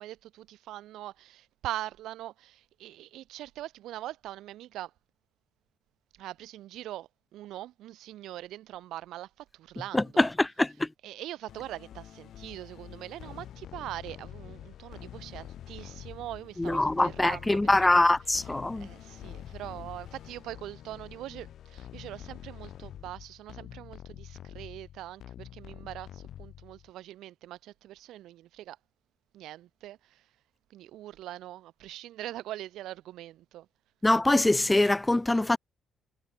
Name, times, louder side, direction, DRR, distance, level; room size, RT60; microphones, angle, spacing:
voice 1, 0.0-4.9 6.2-10.3 11.0-18.1 18.3-18.5 18.8-28.8 29.3-30.2 30.7-33.7, right 14 dB, 85° right, 4.2 m, -42 dB
voice 2, 9.9-10.9 16.6-18.9 34.0-35.6, left 2 dB, 15° left, 0.6 m, -24 dB
sound 1, 11.5-26.9, left 10 dB, 70° left, 2.5 m, -46 dB
cardioid pair, 90°, 0 cm